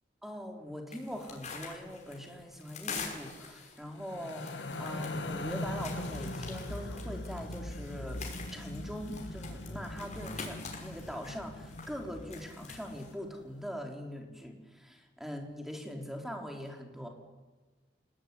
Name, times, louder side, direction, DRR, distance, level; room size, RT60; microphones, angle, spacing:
voice 1, 0.2-17.1, equal, ahead, 2 dB, 4.1 m, -42 dB
sound 1, 0.9-13.1, left 5 dB, 40° left, 5.9 m, -46 dB
sound 2, 3.9-13.3, left 1 dB, 80° left, 2.1 m, -40 dB
29.5 x 19.0 x 9.8 m, 1.3 s
head